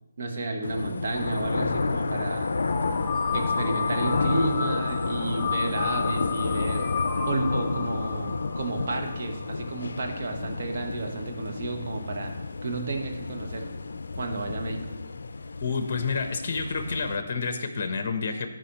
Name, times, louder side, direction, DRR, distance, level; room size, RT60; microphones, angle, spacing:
voice 1, 0.2-2.5 3.3-6.9 7.3-12.3 12.6-13.7 14.2-14.8, right 2 dB, 50° right, 3 dB, 1.1 m, -31 dB
sound 1, 0.6-17.2, left 3 dB, 70° left, 0.4 m, -31 dB
sound 2, 2.7-9.5, left 6 dB, 15° left, 0.5 m, -32 dB
voice 2, 15.6-18.5, left 4 dB, 40° left, 7 dB, 0.9 m, -29 dB
13.0 x 5.1 x 2.9 m, 1.0 s
hypercardioid pair, 160°, 0 cm